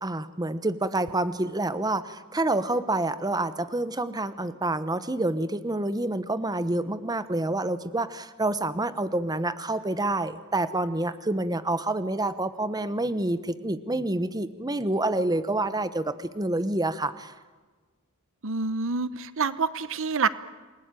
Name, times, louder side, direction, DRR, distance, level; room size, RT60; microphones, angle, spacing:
voice 1, 0.0-17.3, right 2 dB, 20° right, 13 dB, 1.1 m, -28 dB
voice 2, 18.4-20.3, right 5 dB, 65° right, 15 dB, 0.9 m, -27 dB
28.5 x 20.5 x 9.1 m, 1.3 s
head